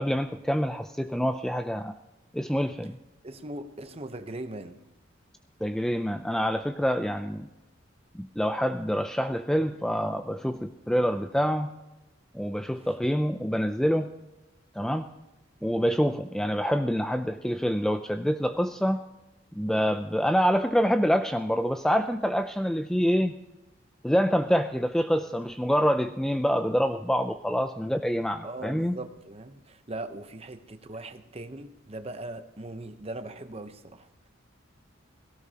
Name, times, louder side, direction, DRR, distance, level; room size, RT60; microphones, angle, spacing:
voice 1, 0.0-1.9 2.3-3.0 5.6-7.5 8.1-11.7 12.3-14.1 14.8-15.1 15.6-19.0 19.5-23.4 24.0-28.9, equal, 5° left, 0.4 m, -26 dB
voice 2, 3.2-4.8 28.4-34.3, right 2 dB, 30° right, 0.9 m, -40 dB
17.5 x 17.0 x 2.9 m
head